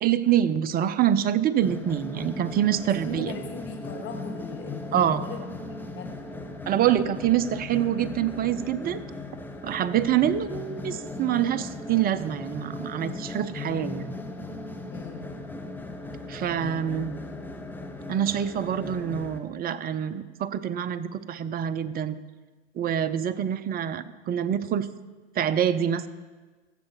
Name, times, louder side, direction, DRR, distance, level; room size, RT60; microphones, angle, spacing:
voice 1, 0.0-3.3 4.9-5.2 6.7-9.0 9.6-14.2 16.3-17.2 18.1-22.2 22.8-24.9 25.4-26.1, right 10 dB, 25° right, 14 dB, 0.6 m, -26 dB
sound 1, 1.6-19.4, left 2 dB, 5° left, 0.9 m, -38 dB
voice 2, 3.0-6.2 14.9-15.3, left 5 dB, 35° left, 3 dB, 1.5 m, -40 dB
14.5 x 7.5 x 4.7 m, 1.3 s
hypercardioid pair, 100°, 35 cm